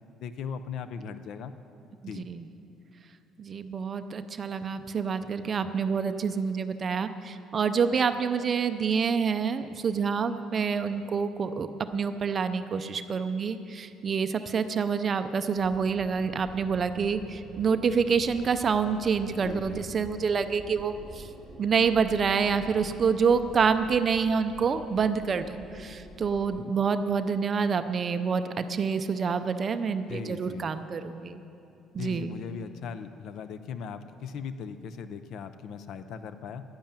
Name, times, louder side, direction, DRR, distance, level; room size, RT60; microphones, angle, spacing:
voice 1, 0.2-1.5 2.1-2.3 19.4-19.8 30.1-30.7 32.0-36.6, left 6 dB, 50° left, 11 dB, 0.6 m, -38 dB
voice 2, 3.4-21.3 21.6-31.4 31.9-32.4, right 6 dB, 25° right, 10 dB, 0.5 m, -27 dB
sound 1, 15.6-26.6, right 2 dB, 10° right, 1.2 m, -47 dB
11.0 x 10.5 x 8.9 m, 2.7 s
cardioid pair, 175°, 0 cm